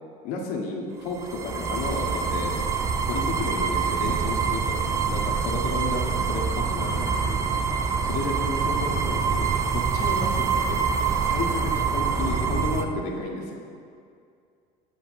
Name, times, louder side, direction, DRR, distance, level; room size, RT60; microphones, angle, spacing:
voice 1, 0.2-2.6 3.0-4.8 5.1-6.4 6.7-7.6 8.0-10.9 11.2-13.6, left 3 dB, 75° left, -1 dB, 1.3 m, -32 dB
sound 1, 1.1-12.8, right 6 dB, 20° right, 0.4 m, -25 dB
8.1 x 6.3 x 4.8 m, 2.3 s
cardioid pair, 170°, 15 cm